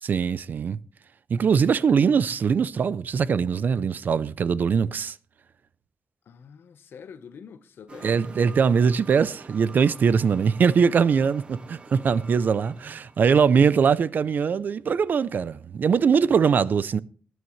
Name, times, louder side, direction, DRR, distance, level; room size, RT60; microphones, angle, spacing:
voice 1, 0.0-0.8 1.3-5.2 8.0-17.0, right 6 dB, 50° right, 0.5 m, -22 dB
voice 2, 6.3-8.2 16.3-16.6, left 6 dB, 70° left, 1.0 m, -46 dB
sound 1, 7.9-13.4, right 3 dB, 25° right, 0.7 m, -46 dB
20.0 x 9.3 x 3.2 m
wide cardioid pair, 180°, 4 cm